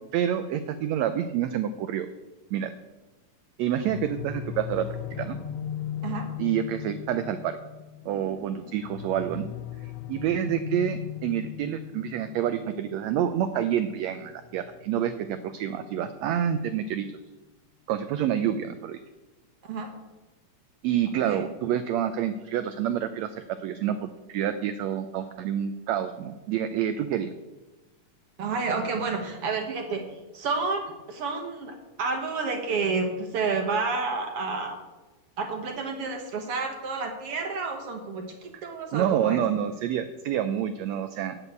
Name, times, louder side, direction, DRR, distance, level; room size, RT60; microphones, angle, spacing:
voice 1, 0.1-2.1 2.5-2.7 3.6-5.4 6.4-7.6 8.0-9.5 9.8-17.1 17.9-19.0 20.8-27.3 38.9-41.4, right 10 dB, 90° right, 10 dB, 1.5 m, -28 dB
sound 1, 3.8-16.6, left 10 dB, 80° left, 1.5 m, -39 dB
voice 2, 28.4-30.1 30.3-34.8 35.4-39.4, right 4 dB, 60° right, 4 dB, 1.7 m, -30 dB
7.9 x 7.5 x 8.0 m, 1.1 s
omnidirectional pair, 3.7 m